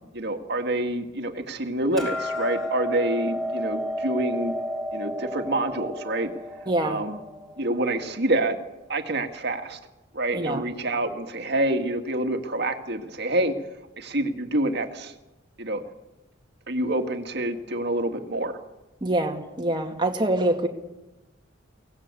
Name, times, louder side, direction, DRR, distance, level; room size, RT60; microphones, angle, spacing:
voice 1, 0.1-4.5 4.9-6.3 6.8-7.2 7.6-8.6 8.9-9.8 10.1-13.5 14.0-15.1 15.6-15.8 16.7-18.6, right 1 dB, 55° right, 6 dB, 2.1 m, -27 dB
Hammer, 2.0-8.2, left 1 dB, ahead, 5.4 m, -32 dB
voice 2, 6.7-7.0 10.3-10.6 19.0-20.7, right 1 dB, 25° right, 2 dB, 2.1 m, -25 dB
23.0 x 18.0 x 8.4 m, 1.0 s
head